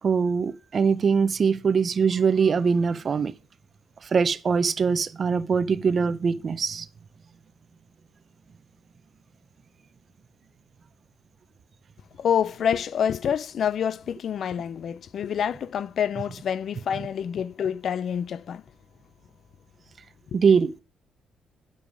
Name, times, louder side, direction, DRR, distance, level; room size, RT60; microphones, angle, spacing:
voice 1, 0.0-3.3 4.0-6.9 20.3-20.7, right 5 dB, 45° right, 0.7 m, -22 dB
voice 2, 12.2-18.6, left 8 dB, 60° left, 0.5 m, -27 dB
9.2 x 7.3 x 4.7 m
cardioid pair, 90°, 0 cm